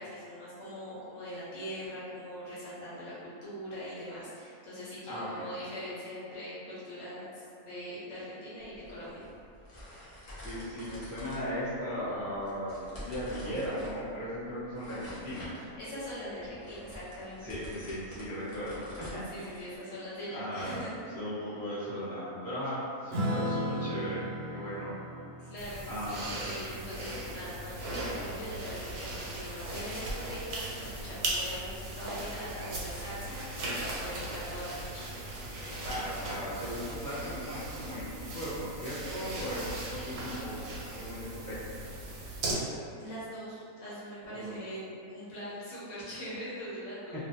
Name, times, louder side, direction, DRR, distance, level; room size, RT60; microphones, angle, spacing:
voice 1, 0.0-9.2 15.7-17.6 19.2-20.9 25.4-35.1 40.8-41.0 42.3-42.5 43.0-47.2, equal, 65° left, -9 dB, 0.9 m, -42 dB
voice 2, 5.0-5.4 10.4-15.6 17.4-19.6 20.3-20.8 21.1-24.9 25.9-26.3 35.8-40.7 40.9-41.8 44.3-44.6 47.1-47.2, equal, 25° right, -14 dB, 0.6 m, -37 dB
sound 1, 8.6-19.8, equal, 80° left, 0.3 m, -48 dB
Acoustic guitar / Strum, 23.1-27.9, equal, 65° right, 0.9 m, -36 dB
sound 2, 25.6-42.5, right 2 dB, 85° right, 1.1 m, -38 dB
2.5 x 2.2 x 2.6 m, 2.5 s
omnidirectional pair, 1.5 m